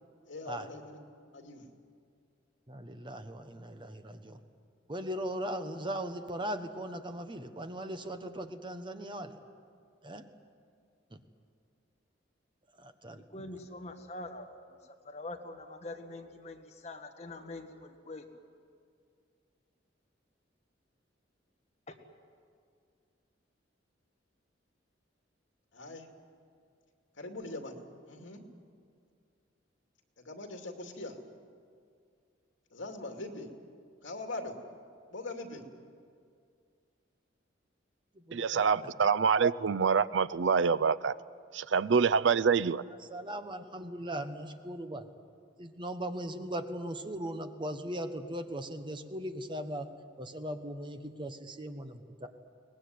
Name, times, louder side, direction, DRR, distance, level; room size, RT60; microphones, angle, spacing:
voice 1, 0.2-1.0 1.3-1.7 25.7-26.1 27.2-28.4 30.2-31.2 32.7-33.5 34.0-34.6 35.1-35.6, left 2 dB, 80° left, 2.6 m, -42 dB
voice 2, 2.7-4.4 4.9-9.4 10.0-10.2 11.1-11.2 12.8-13.5 38.1-38.9 43.1-45.1 45.6-49.9 50.2-52.3, right 1 dB, 25° right, 1.2 m, -39 dB
voice 3, 13.1-14.5 15.0-18.3 21.9-22.0, left 2 dB, 35° left, 1.8 m, -44 dB
voice 4, 38.3-41.1 41.5-42.8, right 6 dB, 70° right, 0.5 m, -26 dB
23.0 x 19.0 x 9.5 m
head